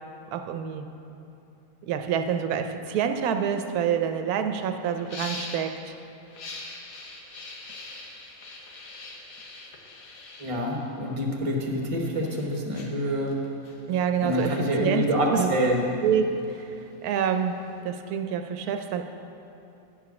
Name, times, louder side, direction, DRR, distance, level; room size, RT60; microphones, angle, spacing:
voice 1, 0.3-0.9 1.8-5.9 13.9-14.5 14.8-15.5 16.0-16.3 16.5-16.6 17.0-17.6 17.8-19.0, right 8 dB, 85° right, 7 dB, 1.1 m, -27 dB
sound 1, 3.8-3.9 4.2-4.4 4.9-5.8 6.2-11.5 12.0-17.8, left 3 dB, 70° left, 1.4 m, -43 dB
voice 2, 10.4-13.4 14.2-15.9, equal, 25° right, 0 dB, 0.9 m, -26 dB
9.6 x 4.9 x 6.9 m, 2.7 s
omnidirectional pair, 1.5 m